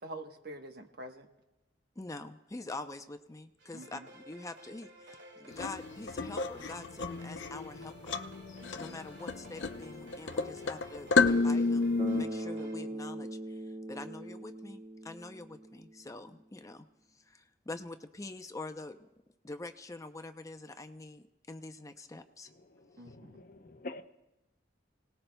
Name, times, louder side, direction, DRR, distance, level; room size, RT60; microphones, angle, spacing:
voice 1, 0.0-1.3 3.7-4.1 8.6-9.0 23.0-23.4, right 1 dB, 60° right, 1.2 m, -46 dB
voice 2, 2.0-8.2 8.7-16.8 17.1-19.1 19.4-22.5, left 2 dB, 20° left, 0.6 m, -45 dB
sound 1, 3.6-12.8, right 1 dB, 80° right, 2.3 m, -55 dB
sound 2, 5.5-12.2, left 4 dB, 85° left, 0.6 m, -31 dB
Bass guitar, 12.0-16.0, right 1 dB, 40° right, 2.6 m, -41 dB
voice 3, 22.5-24.0, left 2 dB, 50° left, 0.7 m, -47 dB
29.5 x 18.5 x 2.3 m
head